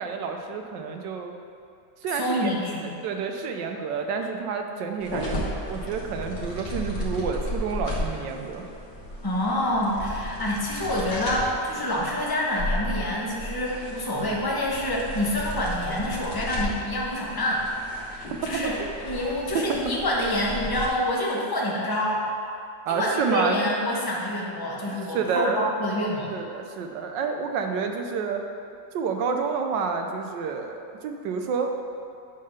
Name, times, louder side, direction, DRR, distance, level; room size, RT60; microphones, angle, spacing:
voice 1, 0.0-1.3 2.0-2.5 2.8-5.4 5.6-8.6 18.6-18.9 22.9-23.6 25.1-25.7 26.3-28.4 28.9-31.7, right 5 dB, 85° right, 4 dB, 1.4 m, -29 dB
voice 2, 2.1-2.9 9.2-18.7 19.0-22.3 22.9-26.3, left 1 dB, 15° left, -5 dB, 1.1 m, -27 dB
sound 1, 5.0-20.9, left 1 dB, 60° left, 1.9 m, -34 dB
9.7 x 3.8 x 6.5 m, 2.4 s
omnidirectional pair, 1.9 m